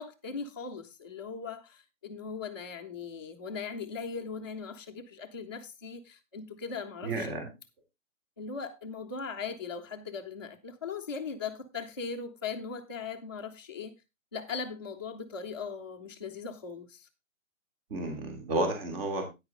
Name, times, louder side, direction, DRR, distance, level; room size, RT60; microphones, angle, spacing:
voice 1, 0.0-7.3 8.4-13.9 14.3-17.1, left 5 dB, 20° left, 0.4 m, -39 dB
voice 2, 7.0-7.5 17.9-19.2, right 2 dB, 45° right, 3.0 m, -31 dB
9.6 x 9.1 x 3.6 m
hypercardioid pair, 155°, 42 cm